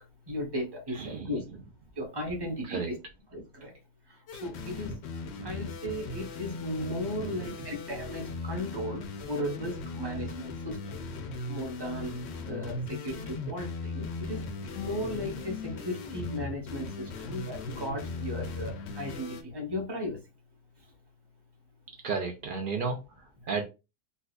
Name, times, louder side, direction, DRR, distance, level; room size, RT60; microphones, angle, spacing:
voice 1, 0.3-1.4 2.0-2.9 3.3-3.7 4.4-4.9 5.4-11.0 11.5-14.4 14.7-20.2, left 1 dB, 20° right, 0.9 m, -36 dB
voice 2, 0.9-1.6 2.6-2.9 5.4-5.7 7.2-7.7 9.9-10.2 14.8-15.1 22.0-23.6, right 5 dB, 75° right, 0.4 m, -35 dB
sound 1, 4.3-19.4, left 3 dB, 65° left, 0.7 m, -38 dB
4.2 x 2.3 x 2.4 m
omnidirectional pair, 1.6 m